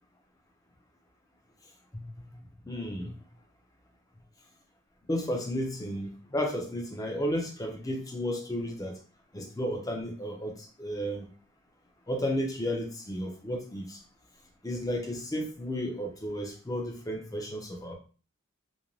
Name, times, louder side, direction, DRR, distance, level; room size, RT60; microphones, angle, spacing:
voice 1, 2.7-3.1 5.1-9.0 9.3-11.3 12.1-14.0 14.6-17.9, equal, 15° left, 1 dB, 0.6 m, -33 dB
2.6 x 2.1 x 3.0 m, 0.37 s
head